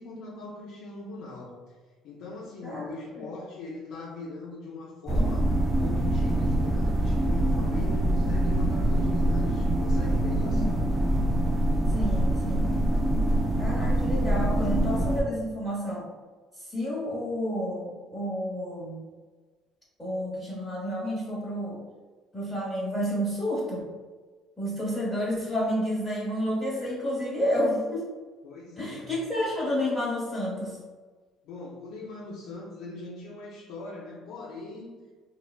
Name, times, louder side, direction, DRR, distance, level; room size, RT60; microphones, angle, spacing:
voice 1, 0.0-1.8 2.0-10.7 28.4-29.1 31.4-35.0, left 3 dB, 75° left, -4 dB, 0.5 m, -41 dB
sound 1, 5.1-15.2, right 1 dB, 15° right, 0.4 m, -24 dB
voice 2, 10.4-11.1 11.9-12.8 13.6-16.1 16.6-19.1 20.0-21.8 22.3-23.9 24.6-28.1 28.8-30.8, equal, 10° left, -8 dB, 1.0 m, -30 dB
3.2 x 2.1 x 2.4 m, 1.4 s
cardioid pair, 125°, 0 cm